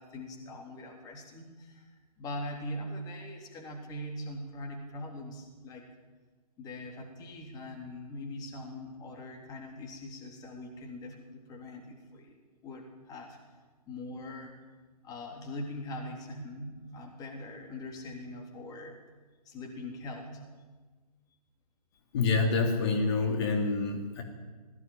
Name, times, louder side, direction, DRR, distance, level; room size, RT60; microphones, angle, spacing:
voice 1, 0.0-1.9 2.2-5.8 6.6-12.4 12.6-13.4 13.9-14.6 15.0-19.0 19.5-20.5, left 1 dB, 20° left, 1 dB, 3.6 m, -42 dB
voice 2, 22.1-24.2, left 4 dB, 40° left, 2 dB, 3.2 m, -27 dB
21.5 x 16.5 x 9.2 m, 1.3 s
figure-of-eight pair, 130°, 21 cm